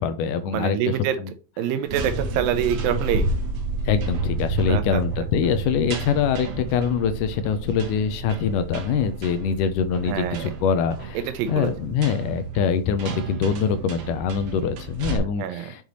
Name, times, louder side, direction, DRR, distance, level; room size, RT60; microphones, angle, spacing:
voice 1, 0.0-1.3 3.9-15.8, left 7 dB, 80° left, 10 dB, 2.1 m, -24 dB
voice 2, 0.5-1.2 1.6-3.3 4.7-5.0 10.1-10.5 11.2-11.7 15.4-15.7, right 9 dB, 90° right, 9 dB, 2.6 m, -25 dB
sound 1, 1.8-15.2, right 3 dB, 65° right, 1.5 m, -31 dB
6.5 x 5.4 x 3.0 m, 0.35 s
omnidirectional pair, 4.0 m